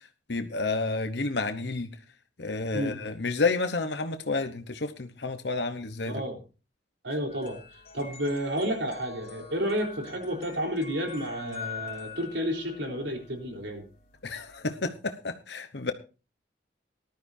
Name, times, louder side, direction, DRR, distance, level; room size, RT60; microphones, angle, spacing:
voice 1, 0.3-1.9 2.4-6.2 14.2-15.9, left 3 dB, 65° left, 8 dB, 1.0 m, -30 dB
voice 2, 6.1-6.4 7.0-7.6 7.9-13.9, equal, 75° right, 2 dB, 4.0 m, -31 dB
sound 1, 7.3-14.5, left 6 dB, 50° left, 4.0 m, -45 dB
19.0 x 12.5 x 2.7 m, 0.33 s
head